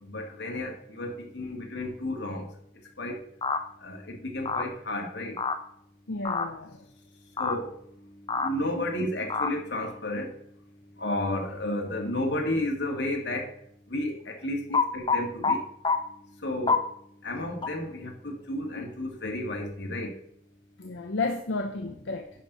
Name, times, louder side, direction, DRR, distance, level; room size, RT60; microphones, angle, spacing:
voice 1, 0.0-2.5 3.0-3.2 3.8-5.4 7.4-7.7 8.4-10.3 11.0-13.5 13.9-14.7 14.9-15.6 16.4-16.8 17.2-20.1, left 1 dB, 70° left, 1 dB, 2.1 m, -32 dB
sound 1, 3.4-3.6 4.4-4.7 5.4-5.6 6.2-6.5 7.4-7.6 8.3-8.5 9.3-9.5 14.7-15.5 15.8-16.0 16.7-16.8 17.6-17.7, left 4 dB, 25° left, 0.6 m, -25 dB
voice 2, 6.1-6.8 8.8-8.9 14.7-14.8 20.8-22.3, left 3 dB, 85° left, 4 dB, 0.8 m, -32 dB
10.5 x 6.2 x 4.0 m, 0.71 s
head